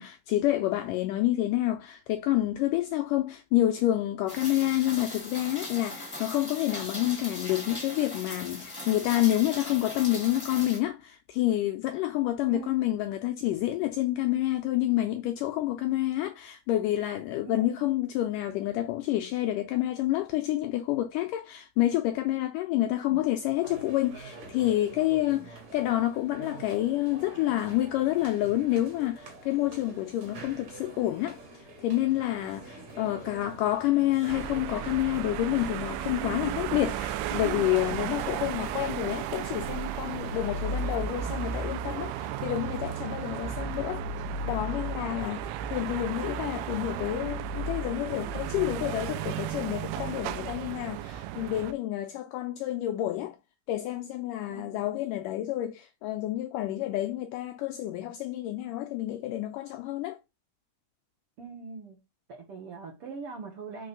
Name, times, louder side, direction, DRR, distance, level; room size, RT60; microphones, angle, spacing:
voice 1, 0.0-44.0 44.4-45.5 45.7-53.4 53.7-60.2, left 14 dB, 85° left, 1.9 m, -28 dB
Rain, 4.3-10.8, left 1 dB, 15° left, 0.7 m, -39 dB
voice 2, 17.4-17.9 22.7-23.2 25.3-25.5 54.5-55.0 61.4-62.0 62.3-63.9, right 5 dB, 65° right, 1.5 m, -42 dB
sound 1, 23.6-40.9, right 2 dB, 50° right, 3.0 m, -47 dB
sound 2, 34.3-51.7, right 7 dB, 90° right, 2.6 m, -34 dB
6.3 x 3.3 x 5.3 m
omnidirectional pair, 4.4 m